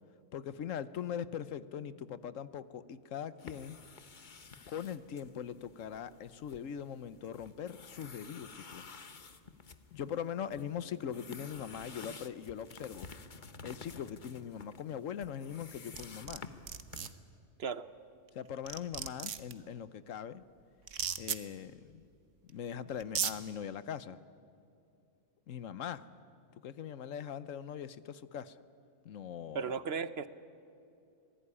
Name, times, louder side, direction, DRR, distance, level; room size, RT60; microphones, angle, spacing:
voice 1, 0.3-3.8 4.7-8.9 9.9-13.1 13.6-16.4 18.3-20.4 21.2-22.0 22.4-24.2 25.5-26.0 26.6-28.6 29.0-29.8, left 8 dB, 80° left, 15 dB, 1.2 m, -41 dB
sound 1, 3.4-17.1, left 4 dB, 40° left, 1.2 m, -52 dB
sound 2, 16.0-16.4 16.7-17.1 18.3-18.4 18.7-19.5 20.9-21.4 22.5-22.6 23.0-23.3, right 8 dB, 75° right, 1.4 m, -35 dB
voice 2, 29.5-30.3, right 6 dB, 55° right, 14 dB, 1.0 m, -35 dB
27.0 x 18.5 x 9.8 m, 2.5 s
omnidirectional pair, 1.3 m